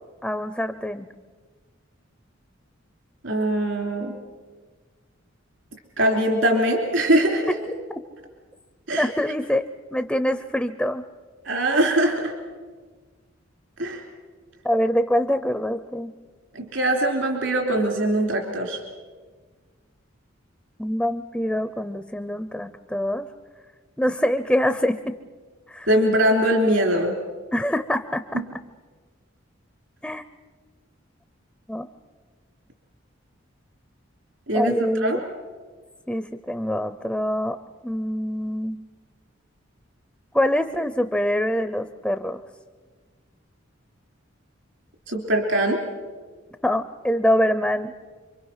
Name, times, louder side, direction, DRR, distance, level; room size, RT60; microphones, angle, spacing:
voice 1, 0.2-1.1 8.9-9.6 9.9-11.0 14.6-16.1 20.8-23.3 24.0-25.1 25.7-25.9 27.5-28.4 30.0-30.2 31.7-31.9 34.5-35.2 36.1-37.6 37.8-38.8 40.3-42.4 46.6-47.9, equal, 5° left, 10 dB, 0.6 m, -24 dB
voice 2, 3.2-4.2 6.0-7.5 8.9-9.1 11.4-12.3 13.8-14.0 16.5-18.8 25.9-27.2 34.5-34.7 35.0-35.2 45.1-45.8, right 1 dB, 75° right, 2 dB, 3.1 m, -22 dB
27.0 x 24.5 x 5.6 m, 1.5 s
head